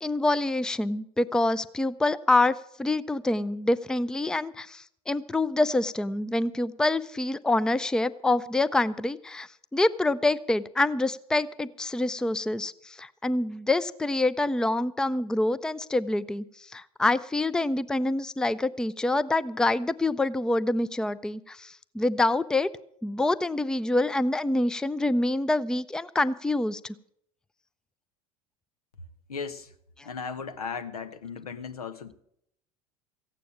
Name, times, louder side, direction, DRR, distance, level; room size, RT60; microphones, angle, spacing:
voice 1, 0.0-16.4 16.7-22.7 23.0-26.9, left 2 dB, 5° left, 17 dB, 0.5 m, -26 dB
voice 2, 29.3-29.7 30.0-32.1, left 5 dB, 80° left, 11 dB, 1.1 m, -36 dB
15.5 x 9.3 x 7.1 m, 0.73 s
hypercardioid pair, 75°, 19 cm